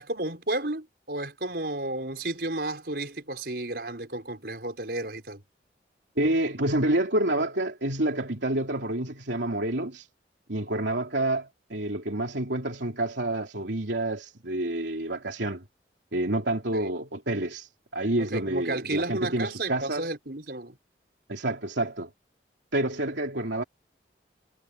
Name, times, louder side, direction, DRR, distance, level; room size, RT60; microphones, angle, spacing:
voice 1, 0.0-5.4 16.7-16.9 18.2-20.8, right 2 dB, 60° right, 5.7 m, -32 dB
voice 2, 6.2-10.1 10.5-15.6 16.1-20.1 21.3-22.1 22.7-23.6, right 1 dB, 80° right, 3.1 m, -28 dB
head